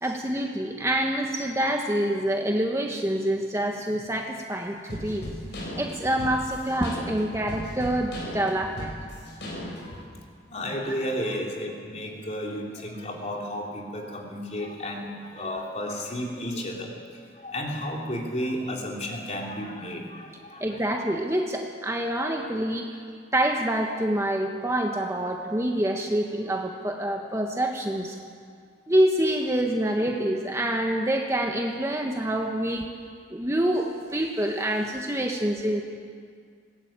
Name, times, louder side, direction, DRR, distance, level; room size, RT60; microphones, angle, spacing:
voice 1, 0.0-5.3 5.8-8.9 20.6-23.0 23.3-28.2 28.9-32.9 33.3-35.8, right 1 dB, 15° right, 2 dB, 1.2 m, -26 dB
sound 1, 4.9-10.0, equal, 65° left, 6.1 m, -36 dB
voice 2, 10.5-20.8, equal, 35° left, -1 dB, 3.5 m, -33 dB
20.5 x 18.0 x 8.9 m, 2.1 s
head